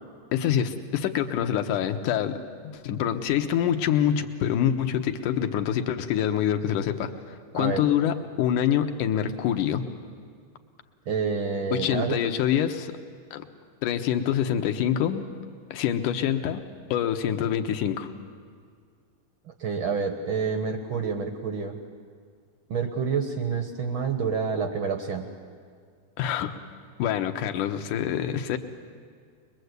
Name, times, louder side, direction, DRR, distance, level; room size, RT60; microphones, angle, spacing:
voice 1, 0.3-7.1 7.5-9.8 11.7-12.9 13.3-13.5 13.8-15.2 15.7-16.6 16.9-18.1 26.2-26.5 27.0-28.6, left 9 dB, 70° left, 7 dB, 2.4 m, -26 dB
voice 2, 11.1-12.2 19.6-21.8 22.7-25.3, right 5 dB, 65° right, 6 dB, 1.2 m, -28 dB
22.5 x 22.5 x 8.1 m, 2.1 s
omnidirectional pair, 4.1 m